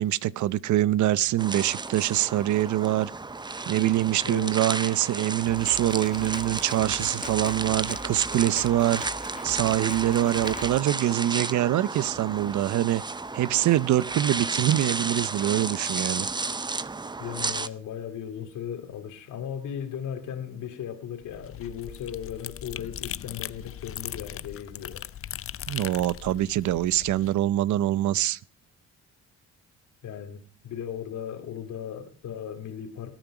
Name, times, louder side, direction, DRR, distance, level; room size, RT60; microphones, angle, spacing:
voice 1, 0.0-3.1 3.7-9.0 9.4-13.0 13.3-16.3 25.7-28.4, right 13 dB, 70° right, 0.7 m, -24 dB
sound 1, 1.4-17.7, right 3 dB, 15° right, 0.6 m, -33 dB
Drum kit, 5.4-10.8, left 3 dB, 25° left, 1.6 m, -42 dB
voice 2, 17.2-25.0 30.0-33.1, left 9 dB, 80° left, 2.6 m, -37 dB
sound 2, 21.2-27.3, left 11 dB, 45° left, 0.5 m, -39 dB
19.0 x 9.2 x 4.9 m
cardioid pair, 90°, 30 cm